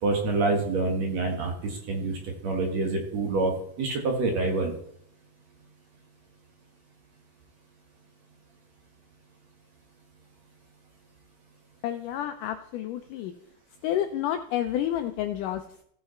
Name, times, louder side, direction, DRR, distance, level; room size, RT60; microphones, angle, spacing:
voice 1, 0.0-3.5 3.8-4.7, right 3 dB, 55° right, 2 dB, 2.4 m, -27 dB
voice 2, 11.8-13.3 13.8-15.8, left 11 dB, 85° left, 7 dB, 1.9 m, -30 dB
16.5 x 5.6 x 4.4 m, 0.67 s
omnidirectional pair, 4.3 m